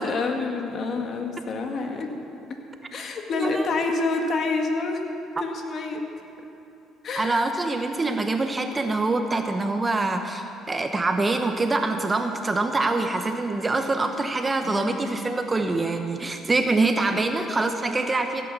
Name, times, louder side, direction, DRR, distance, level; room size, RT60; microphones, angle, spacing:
voice 1, 0.0-2.1 2.9-5.0 5.4-6.0 7.0-7.5 14.6-15.1, left 3 dB, 55° left, 3 dB, 1.9 m, -28 dB
voice 2, 3.3-3.7 5.4-5.5 7.2-18.4, right 3 dB, 25° right, 6 dB, 1.0 m, -25 dB
16.0 x 8.6 x 7.0 m, 2.7 s
supercardioid pair, 75°, 0 cm